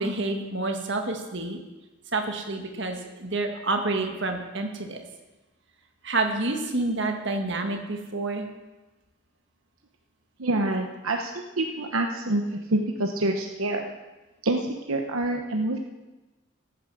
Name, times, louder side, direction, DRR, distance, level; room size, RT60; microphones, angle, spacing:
voice 1, 0.0-1.6 2.1-5.0 6.0-8.5, right 2 dB, 55° right, 4 dB, 1.7 m, -28 dB
voice 2, 10.4-13.9 14.4-15.8, right 2 dB, 80° right, 3 dB, 1.0 m, -27 dB
15.0 x 9.6 x 6.3 m, 1.1 s
head